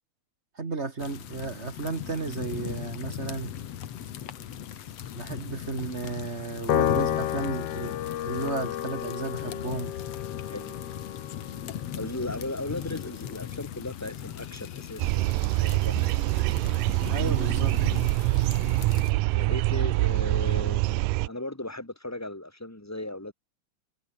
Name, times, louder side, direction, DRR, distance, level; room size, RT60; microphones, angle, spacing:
voice 1, 0.5-3.5 5.1-8.0 8.2-10.0 17.1-17.8, right 4 dB, 40° right, 0.9 m, -33 dB
sound 1, 1.0-19.1, left 10 dB, 55° left, 2.1 m, -39 dB
Piano, 6.7-13.3, left 12 dB, 75° left, 1.4 m, -32 dB
voice 2, 10.5-10.8 12.0-16.0 19.3-23.3, left 1 dB, 5° left, 3.2 m, -37 dB
sound 2, 15.0-21.3, right 21 dB, 85° right, 1.9 m, -25 dB
omnidirectional pair, 4.4 m